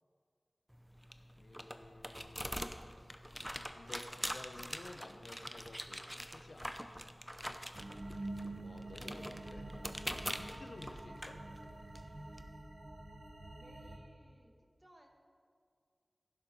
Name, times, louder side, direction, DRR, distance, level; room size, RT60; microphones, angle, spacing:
sound 1, 0.7-12.4, equal, ahead, 0.7 m, -45 dB
voice 1, 1.4-2.5 3.7-7.1 8.6-9.7 10.2-11.4, left 2 dB, 70° left, 6 dB, 0.7 m, -53 dB
sound 2, 7.8-14.0, right 2 dB, 60° right, 1.2 m, -47 dB
voice 2, 13.6-14.5 14.8-15.1, right 1 dB, 25° right, 1 dB, 1.8 m, -62 dB
15.5 x 7.3 x 5.5 m, 2.1 s
wide cardioid pair, 50°, 0 cm